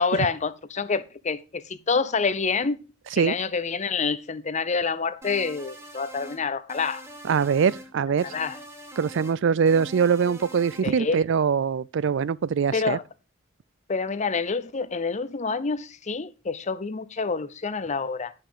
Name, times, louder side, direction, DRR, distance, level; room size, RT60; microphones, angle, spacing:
voice 1, 0.0-2.8 3.2-7.1 8.2-8.6 10.8-11.2 12.7-13.0 13.9-18.3, left 4 dB, 35° left, 0.7 m, -27 dB
sound 1, 5.2-6.4 6.7-7.9 8.2-9.4 9.7-10.9, equal, 15° right, 1.8 m, -43 dB
voice 2, 7.3-8.3 9.0-13.0, right 6 dB, 65° right, 0.4 m, -23 dB
10.5 x 5.7 x 5.0 m
head